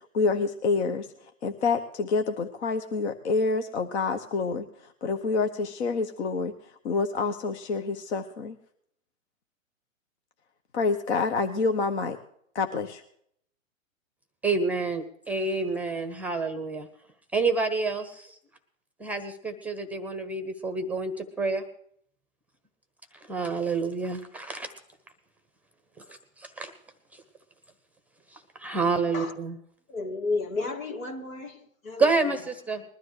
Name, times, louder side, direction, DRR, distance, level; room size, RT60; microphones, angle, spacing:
voice 1, 0.1-1.1 1.4-6.5 6.8-8.6 10.7-12.2 12.5-13.0, left 4 dB, 55° left, 1.1 m, -27 dB
voice 2, 14.4-16.9 17.3-18.4 19.0-21.6 23.2-24.7 26.0-26.7 27.1-27.2 28.3-29.6 32.0-32.8, right 4 dB, 5° right, 0.8 m, -28 dB
voice 3, 29.9-32.1, left 3 dB, 80° left, 2.2 m, -32 dB
20.5 x 12.5 x 3.2 m
hypercardioid pair, 125°, 41 cm